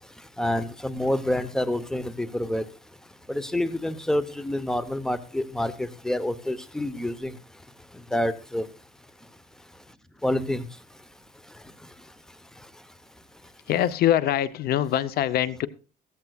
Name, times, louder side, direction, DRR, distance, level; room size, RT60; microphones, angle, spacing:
voice 1, 0.4-2.6 3.3-7.3 8.1-8.7 10.2-10.7, left 1 dB, 5° left, 0.9 m, -27 dB
voice 2, 13.7-15.7, left 11 dB, 65° left, 0.7 m, -23 dB
16.0 x 14.0 x 2.4 m
cardioid pair, 110°, 17 cm